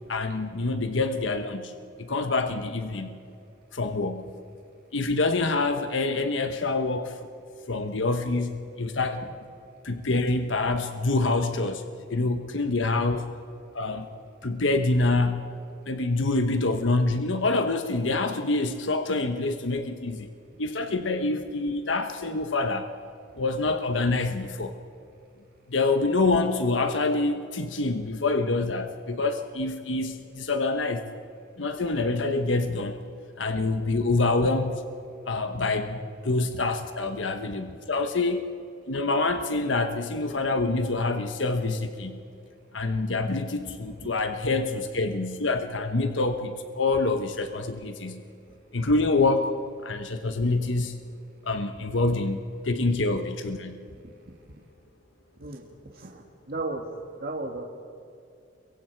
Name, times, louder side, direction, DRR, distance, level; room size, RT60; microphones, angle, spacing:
voice 1, 0.1-1.7 2.0-3.2 3.7-4.3 4.9-7.2 7.7-9.2 9.8-11.8 12.1-13.3 13.7-14.1 14.4-15.5 15.9-20.3 20.6-22.9 23.4-24.8 25.7-31.1 31.6-33.0 33.4-34.8 35.3-38.4 38.9-42.2 42.7-48.2 48.7-50.9 51.4-52.4 52.6-53.8, left 3 dB, 85° left, 7 dB, 1.2 m, -26 dB
voice 2, 55.4-56.8 57.2-57.6, right 2 dB, 55° right, 1 dB, 1.8 m, -35 dB
29.5 x 23.0 x 4.6 m, 2.6 s
head